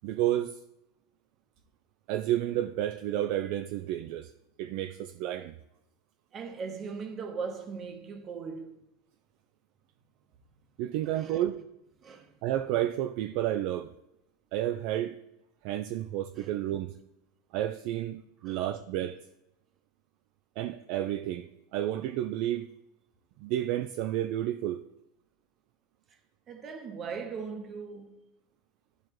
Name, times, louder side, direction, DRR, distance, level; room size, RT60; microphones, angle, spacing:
voice 1, 0.0-0.6 2.1-4.3 4.6-5.5 10.8-11.6 12.4-13.9 14.5-15.2 15.6-16.9 17.5-19.2 20.6-22.7 23.4-24.8, right 12 dB, 50° right, 0.3 m, -31 dB
voice 2, 6.3-8.8 11.1-11.4 12.0-12.3 16.4-16.5 18.4-18.6 26.5-28.1, right 5 dB, 30° right, 1.0 m, -39 dB
12.5 x 4.5 x 3.1 m
supercardioid pair, 150°, 0 cm